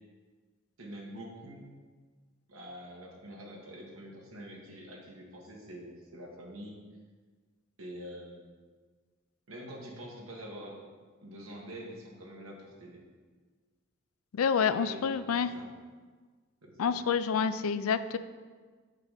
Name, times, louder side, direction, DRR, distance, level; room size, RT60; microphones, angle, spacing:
voice 1, 0.8-1.6 2.5-6.8 7.8-8.4 9.5-10.8 11.2-13.0 14.8-15.7 16.6-17.0, equal, 80° right, -2 dB, 1.9 m, -45 dB
voice 2, 14.3-15.5 16.8-18.2, left 6 dB, 85° left, 13 dB, 0.4 m, -28 dB
8.3 x 4.1 x 6.6 m, 1.5 s
head